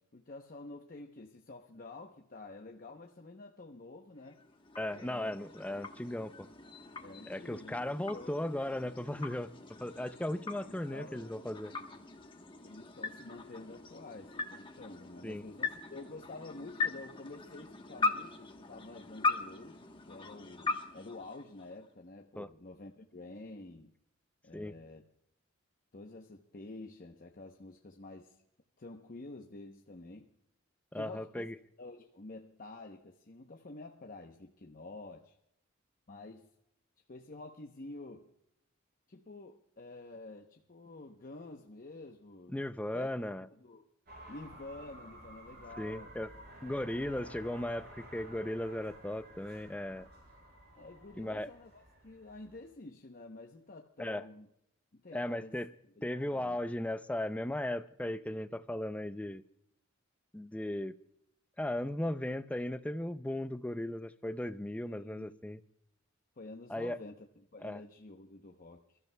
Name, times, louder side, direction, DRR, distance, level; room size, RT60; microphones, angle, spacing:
voice 1, 0.0-4.4 4.9-5.3 7.0-8.4 10.5-11.5 12.6-23.9 24.4-25.0 25.9-28.4 28.8-30.3 30.9-31.5 31.8-35.3 36.1-36.5 37.1-38.3 39.1-42.6 42.9-43.1 43.5-43.8 44.3-46.1 50.8-54.5 54.9-55.6 56.0-56.1 56.3-56.6 64.8-65.4 66.4-69.0, left 2 dB, 45° left, 2 dB, 0.8 m, -49 dB
sound 1, 4.2-22.0, left 4 dB, 25° left, 1.1 m, -40 dB
voice 2, 4.8-6.5 7.3-9.5 9.8-11.7 15.2-15.4 22.4-22.5 24.5-24.7 30.9-31.6 42.5-43.5 45.8-46.3 46.6-50.1 51.2-51.5 54.0-54.3 55.1-55.7 56.0-59.4 60.3-60.9 61.6-65.6 66.7-67.0 67.6-67.8, left 1 dB, 5° left, 12 dB, 0.4 m, -36 dB
sound 2, 44.0-52.7, right 1 dB, 50° right, 5.8 m, -53 dB
28.0 x 13.5 x 2.2 m, 0.79 s
head